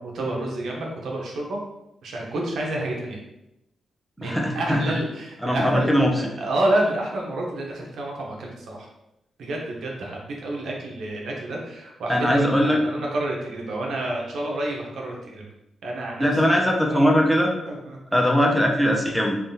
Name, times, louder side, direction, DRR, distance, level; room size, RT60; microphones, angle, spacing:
voice 1, 0.0-1.6 2.0-3.2 4.2-8.9 9.4-15.4 15.8-17.2 17.7-18.0, right 1 dB, 75° right, -1 dB, 0.7 m, -29 dB
voice 2, 4.2-5.0 5.4-6.1 12.1-12.8 16.2-17.5 18.1-19.4, equal, ahead, -1 dB, 0.5 m, -20 dB
3.5 x 2.3 x 2.7 m, 0.88 s
cardioid pair, 115°, 0 cm